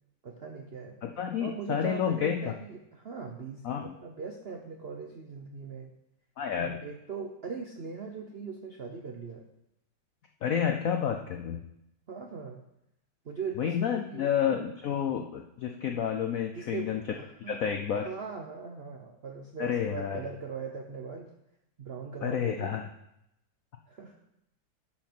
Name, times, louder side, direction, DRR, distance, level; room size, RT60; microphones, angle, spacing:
voice 1, 0.2-1.0 1.4-5.9 6.6-9.4 12.1-12.6 13.2-14.3 16.5-17.6 17.9-21.3 21.8-22.7 23.9-24.2, right 5 dB, 65° right, 3 dB, 0.6 m, -40 dB
voice 2, 1.0-2.4 3.6-3.9 6.4-6.8 10.4-11.6 13.6-17.0 17.5-18.1 19.6-20.2 22.2-22.9, left 8 dB, 75° left, 5 dB, 0.7 m, -30 dB
11.5 x 5.7 x 4.5 m, 0.82 s
omnidirectional pair, 2.1 m